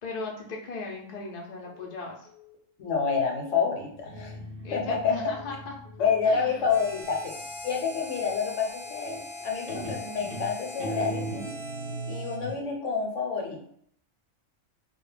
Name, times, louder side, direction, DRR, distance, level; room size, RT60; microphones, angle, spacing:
voice 1, 0.0-2.3 4.6-6.7, left 3 dB, 60° left, -1 dB, 0.4 m, -38 dB
Telephone, 1.6-2.0 2.2-2.6 2.8-3.2 3.4-3.8 4.0-4.4 4.6-5.0 5.2-5.6 5.8-6.2 6.4-6.8 7.0-7.4 7.6-8.0 8.2-8.6 8.8-9.2 9.4-9.8 10.0-10.4 10.6-11.0 11.2-11.6 11.8-12.2 12.4-12.8, left 12 dB, 85° right, 0.3 m, -54 dB
voice 2, 2.8-4.3 4.7-5.1 6.0-7.4 7.6-11.5 12.1-13.6, left 5 dB, 75° left, 1 dB, 0.9 m, -28 dB
Guitar, 3.9-7.5 9.0-9.4 9.7-12.6, right 2 dB, 50° right, 0.8 m, -39 dB
Harmonica, 6.7-12.7, left 2 dB, 20° right, 0.6 m, -41 dB
2.3 x 2.1 x 3.1 m, 0.67 s
omnidirectional pair, 1.3 m